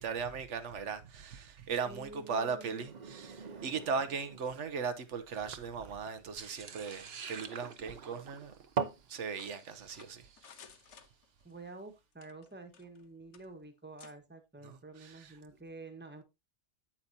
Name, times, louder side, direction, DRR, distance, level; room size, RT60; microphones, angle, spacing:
voice 1, 0.0-8.5 9.1-10.5 14.6-15.3, right 5 dB, 80° right, 1.2 m, -38 dB
voice 2, 1.8-2.9 11.4-16.2, right 3 dB, 10° right, 1.3 m, -49 dB
sound 1, 2.6-9.1, right 6 dB, 40° right, 0.8 m, -42 dB
sound 2, 6.4-10.7, right 6 dB, 60° right, 1.1 m, -49 dB
sound 3, 9.3-11.6 12.1-13.1 13.3-13.5 14.0-14.2, left 7 dB, 75° left, 1.2 m, -57 dB
8.8 x 8.6 x 2.8 m
omnidirectional pair, 1.2 m